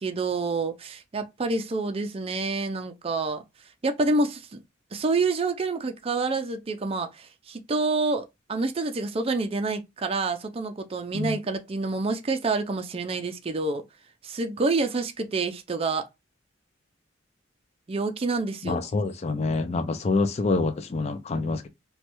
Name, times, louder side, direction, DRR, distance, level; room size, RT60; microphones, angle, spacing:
voice 1, 0.0-3.4 3.8-4.6 4.9-13.8 14.2-16.1 17.9-18.8, right 3 dB, 30° right, 0.4 m, -28 dB
voice 2, 18.6-21.7, left 3 dB, 35° left, 0.3 m, -26 dB
3.1 x 2.2 x 2.9 m
head